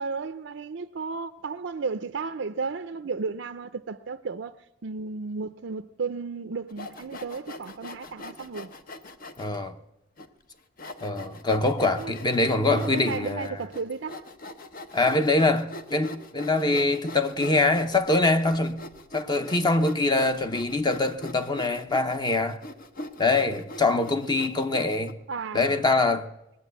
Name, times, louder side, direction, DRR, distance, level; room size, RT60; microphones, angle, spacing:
voice 1, 0.0-8.7 12.0-14.3 25.3-25.8, right 4 dB, 75° right, 0.5 m, -34 dB
Sawing, 6.7-9.6 10.2-10.3 10.8-25.1, left 1 dB, 50° left, 0.9 m, -42 dB
voice 2, 9.4-9.8 11.0-13.6 14.9-18.8 19.1-22.6 23.2-25.2 25.5-26.3, left 2 dB, 25° left, 0.8 m, -24 dB
20.5 x 7.8 x 8.0 m
head